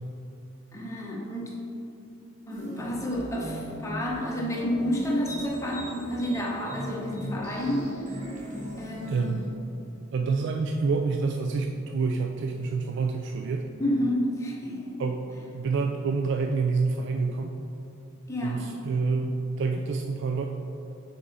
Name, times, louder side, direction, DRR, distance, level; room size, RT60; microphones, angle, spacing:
voice 1, 0.7-1.5 2.5-7.9 8.8-9.5 13.8-15.0 18.3-18.6, equal, 15° left, -3 dB, 0.9 m, -30 dB
sound 1, 2.5-9.5, equal, 40° right, 1.1 m, -38 dB
voice 2, 9.1-9.4 10.1-13.7 15.0-15.2 15.5-17.5 18.4-20.5, right 4 dB, 60° right, 3 dB, 0.3 m, -27 dB
6.1 x 4.4 x 4.0 m, 2.7 s
head